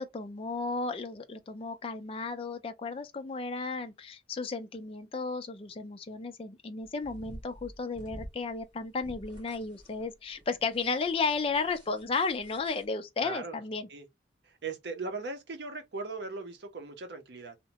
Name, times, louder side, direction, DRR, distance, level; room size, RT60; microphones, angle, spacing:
voice 1, 0.0-13.9, left 4 dB, 30° left, 0.4 m, -34 dB
sound 1, 6.8-12.8, equal, 25° right, 1.1 m, -49 dB
voice 2, 13.2-13.6 13.9-14.1 14.4-17.6, right 3 dB, 65° right, 0.7 m, -38 dB
2.8 x 2.1 x 2.8 m
head